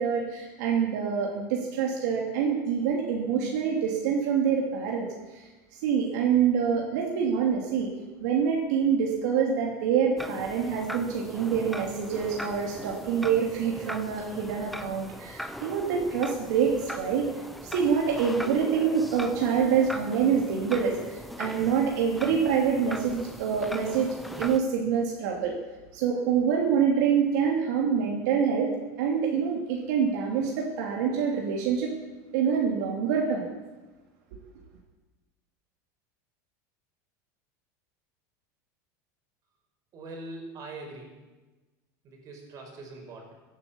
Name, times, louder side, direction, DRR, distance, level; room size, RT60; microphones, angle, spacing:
voice 1, 0.0-5.0 5.3-5.4 5.8-7.9 8.2-17.3 17.6-25.5 25.9-28.7 29.0-31.9 32.3-33.5, right 7 dB, 75° right, -1 dB, 2.9 m, -26 dB
sound 1, 10.2-24.6, equal, ahead, 0.9 m, -40 dB
voice 2, 39.9-41.2 42.0-43.3, right 2 dB, 40° right, 1 dB, 5.1 m, -42 dB
15.5 x 9.8 x 8.7 m, 1.2 s
supercardioid pair, 140°, 9 cm